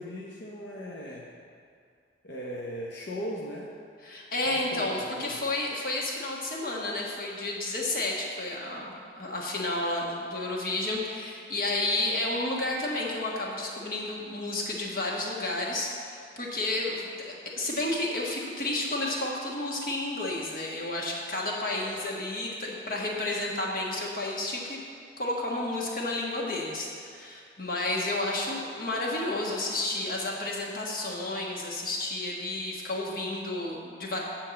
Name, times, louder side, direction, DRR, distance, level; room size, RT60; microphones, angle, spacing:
voice 1, 0.0-1.3 2.2-3.7 4.5-4.9 5.2-5.3 21.7-22.0, equal, 70° left, -3 dB, 0.8 m, -38 dB
voice 2, 4.0-24.8 25.2-34.2, left 2 dB, 50° left, -2 dB, 1.4 m, -31 dB
8.6 x 4.6 x 7.5 m, 2.3 s
head